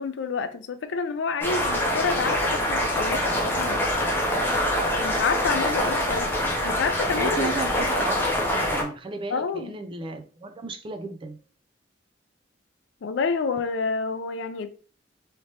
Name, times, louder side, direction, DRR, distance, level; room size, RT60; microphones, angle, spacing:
voice 1, 0.0-3.9 4.9-6.4 6.6-7.5 9.3-9.7 13.0-14.7, left 5 dB, 80° left, 0.4 m, -28 dB
sound 1, 1.4-8.8, left 1 dB, 10° left, 0.6 m, -25 dB
voice 2, 7.1-11.4, right 3 dB, 30° right, 0.4 m, -34 dB
3.3 x 2.9 x 2.8 m
head